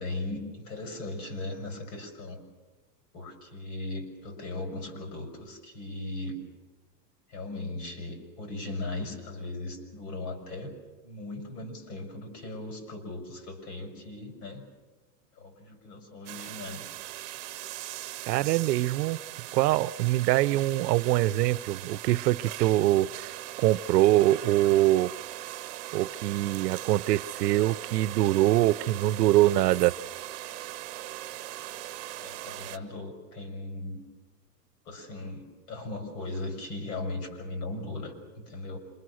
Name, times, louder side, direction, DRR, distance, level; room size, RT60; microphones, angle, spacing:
voice 1, 0.0-2.4 3.1-6.4 7.3-10.7 11.0-14.6 15.3-16.9 32.1-34.0 34.8-38.8, left 2 dB, 70° left, 5 dB, 6.4 m, -38 dB
sound 1, 16.3-32.8, right 15 dB, 45° right, 1.1 m, -40 dB
voice 2, 18.3-19.2 19.5-23.3 23.6-25.1 25.9-29.9, right 15 dB, 75° right, 17 dB, 0.8 m, -24 dB
27.0 x 23.5 x 6.4 m, 1.2 s
supercardioid pair, 170°, 49 cm